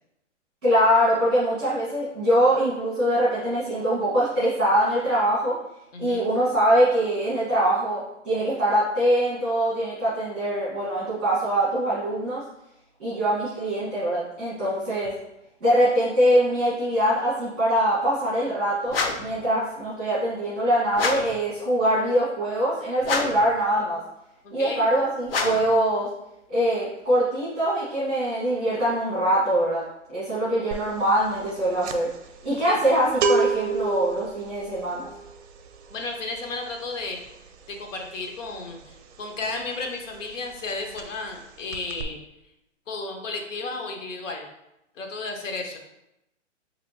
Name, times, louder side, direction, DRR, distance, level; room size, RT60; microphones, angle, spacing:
voice 1, 0.6-5.6 6.0-12.4 13.0-15.1 15.6-24.0 24.5-26.1 26.5-29.8 30.1-32.1 32.4-35.1, right 1 dB, 5° right, -16 dB, 0.4 m, -23 dB
voice 2, 5.9-6.4 24.4-24.9 32.7-32.8 35.9-37.2 37.7-42.2 42.9-44.5 44.9-45.8, left 3 dB, 85° left, 2 dB, 0.9 m, -33 dB
sound 1, 18.9-19.4 20.9-21.4 23.0-23.5 25.3-25.8, left 4 dB, 50° left, 0.5 m, -27 dB
sound 2, 30.7-31.0 31.2-39.8 40.1-40.3 40.6-41.4 41.7-42.0, right 4 dB, 60° right, 0.5 m, -29 dB
3.6 x 2.9 x 2.7 m, 0.86 s
hypercardioid pair, 165°, 37 cm